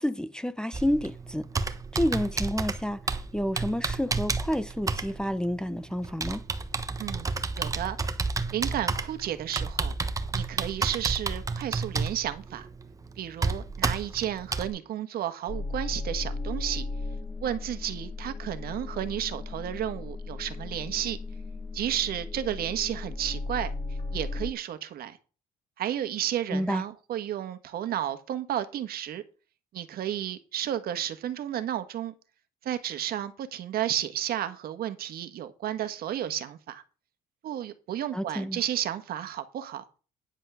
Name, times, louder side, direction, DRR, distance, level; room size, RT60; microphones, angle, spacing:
voice 1, 0.0-1.5 1.9-3.0 3.3-6.4 26.5-26.8 38.1-38.6, equal, 5° left, 0.7 m, -29 dB
Computer keyboard, 0.7-14.7, right 4 dB, 20° right, 1.1 m, -31 dB
voice 2, 7.6-8.0 8.5-9.9 10.3-12.7 13.2-16.8 17.4-21.2 21.7-23.7 24.1-25.2 25.8-29.2 29.7-32.1 32.6-36.8 37.4-39.8, right 11 dB, 65° right, 1.4 m, -32 dB
sound 1, 15.5-24.5, left 3 dB, 25° left, 1.9 m, -36 dB
10.0 x 5.6 x 6.2 m
cardioid pair, 110°, 17 cm